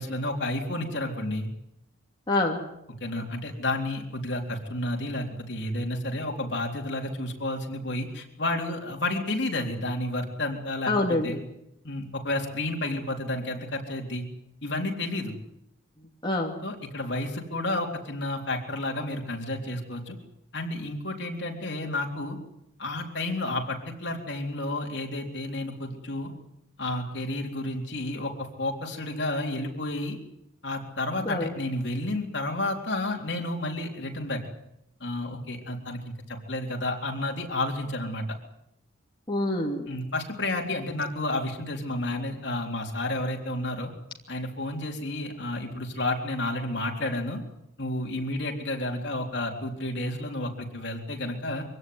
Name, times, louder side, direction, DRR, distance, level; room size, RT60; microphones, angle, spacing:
voice 1, 0.0-1.5 3.0-11.4 11.8-14.3 14.6-15.3 16.6-20.2 20.5-22.4 22.8-26.3 26.8-30.2 30.6-34.4 35.0-38.2 39.9-43.9 44.3-47.4 47.8-51.6, left 1 dB, 60° left, 1 dB, 3.8 m, -31 dB
voice 2, 2.3-2.6 10.9-11.4 16.2-16.5 31.3-31.5 39.3-39.9, left 2 dB, 25° left, -2 dB, 2.7 m, -26 dB
24.0 x 17.0 x 9.6 m, 0.83 s
head